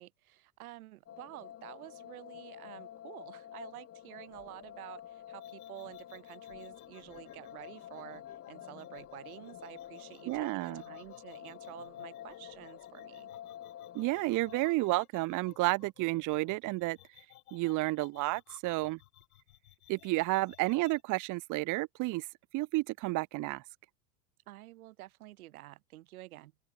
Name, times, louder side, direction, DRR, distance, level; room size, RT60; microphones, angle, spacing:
voice 1, 0.0-13.3 19.9-20.0 24.5-26.5, right 16 dB, 75° right, 3.6 m, -50 dB
sound 1, 1.1-14.8, left 11 dB, 30° left, 1.9 m, -49 dB
sound 2, 5.4-21.0, left 15 dB, 80° left, 6.4 m, -59 dB
voice 2, 10.3-10.8 13.9-17.3 17.5-19.0 19.9-22.3 22.5-23.6, right 20 dB, 45° right, 1.0 m, -31 dB
open air
hypercardioid pair, 100°, 44 cm